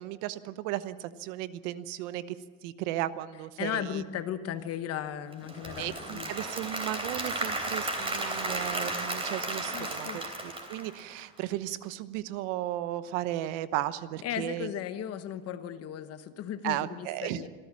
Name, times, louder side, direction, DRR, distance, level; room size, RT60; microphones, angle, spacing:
voice 1, 0.0-2.4 2.6-4.0 5.8-14.8 16.6-17.4, right 14 dB, 65° right, 14 dB, 1.0 m, -35 dB
voice 2, 3.6-6.3 9.7-10.5 14.2-17.5, left 10 dB, 35° left, 11 dB, 1.2 m, -36 dB
Applause / Crowd, 5.3-11.4, right 2 dB, 15° right, 3.3 m, -34 dB
26.5 x 13.5 x 7.5 m, 1.4 s
supercardioid pair, 155°, 42 cm